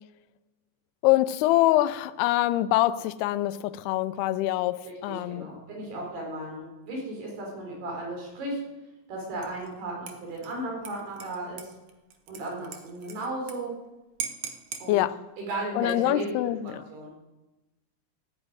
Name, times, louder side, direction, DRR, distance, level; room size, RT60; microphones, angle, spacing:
voice 1, 1.0-5.5 14.9-15.2 15.8-16.8, left 15 dB, 85° left, 14 dB, 2.7 m, -24 dB
voice 2, 4.8-8.6 9.1-11.7 12.3-13.8 14.8-15.1 15.4-16.4 16.6-17.1, right 2 dB, 85° right, -1 dB, 6.5 m, -35 dB
Dishes pots and pans / Liquid, 9.4-9.7 10.1-13.5 13.8-13.9 14.2-14.9 15.7-16.2, right 6 dB, 60° right, 1.7 m, -40 dB
13.5 x 9.7 x 9.5 m, 1.0 s
omnidirectional pair, 4.5 m